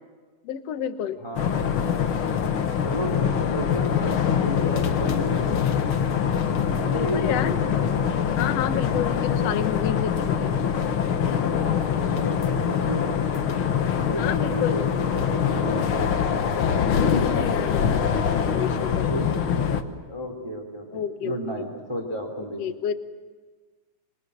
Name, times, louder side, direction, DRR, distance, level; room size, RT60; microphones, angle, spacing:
voice 1, 0.4-1.2 6.9-7.6 8.3-10.5 14.2-15.2 17.1-18.1 18.5-19.2 20.9-21.7 22.6-22.9, left 9 dB, 65° left, 10 dB, 1.7 m, -30 dB
voice 2, 1.2-1.6 2.8-5.5 6.7-7.8 9.3-9.6 10.3-10.5 11.4-13.2 14.1-16.6 19.1-22.6, right 1 dB, 10° right, 3 dB, 2.4 m, -33 dB
sound 1, 1.3-19.8, left 7 dB, 90° left, 1.1 m, -24 dB
26.0 x 23.5 x 8.1 m, 1.4 s
omnidirectional pair, 4.2 m